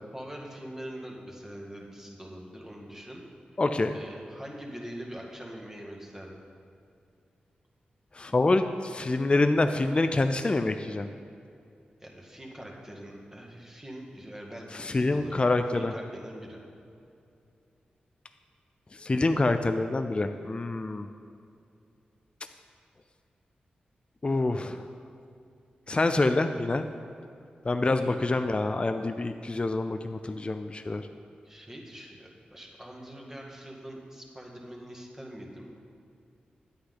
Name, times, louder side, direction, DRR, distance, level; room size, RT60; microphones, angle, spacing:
voice 1, 0.1-3.2 3.5-3.6 3.9-6.4 12.0-16.6 28.0-28.5 31.4-35.7, equal, 15° right, -1 dB, 1.8 m, -43 dB
voice 2, 3.6-4.0 8.2-11.1 14.8-15.9 19.0-21.1 24.2-24.8 25.9-26.9 27.6-31.0, left 2 dB, 35° left, 8 dB, 0.4 m, -26 dB
9.7 x 8.7 x 3.9 m, 2.5 s
cardioid pair, 50°, 3 cm